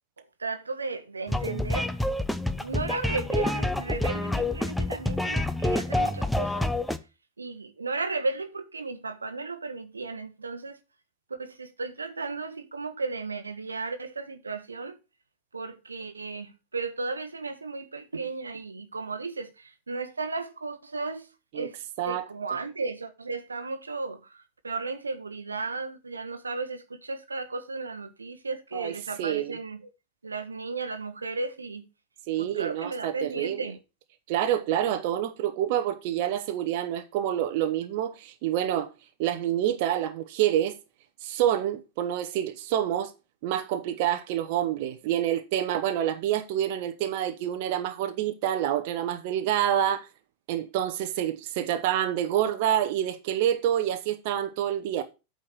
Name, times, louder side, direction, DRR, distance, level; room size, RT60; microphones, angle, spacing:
voice 1, 0.4-2.0 2.5-6.7 7.4-10.8 11.3-15.0 15.5-21.8 22.0-29.9 30.2-31.9 32.4-33.8, right 3 dB, 75° right, 1.0 m, -35 dB
sound 1, 1.3-7.0, left 1 dB, 5° left, 0.7 m, -27 dB
voice 2, 28.7-29.6 32.3-33.7 34.3-38.9 39.2-40.8 41.2-43.1 43.4-50.1 50.5-55.0, right 11 dB, 50° right, 0.9 m, -27 dB
8.5 x 4.4 x 6.6 m
figure-of-eight pair, 90°, 0 cm